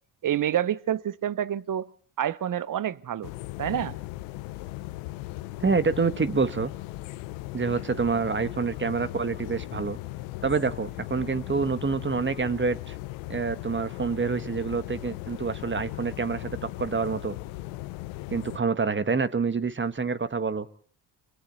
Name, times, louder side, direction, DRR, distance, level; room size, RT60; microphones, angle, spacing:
voice 1, 0.2-1.9 2.2-3.3 3.6-4.0, right 10 dB, 45° right, 1.0 m, -28 dB
sound 1, 3.2-18.6, left 18 dB, 85° left, 0.9 m, -38 dB
voice 2, 5.6-6.7 7.5-10.0 10.4-12.9 13.3-17.4 18.3-20.7, right 4 dB, 25° right, 1.5 m, -27 dB
30.0 x 22.5 x 4.1 m
supercardioid pair, 70°, 46 cm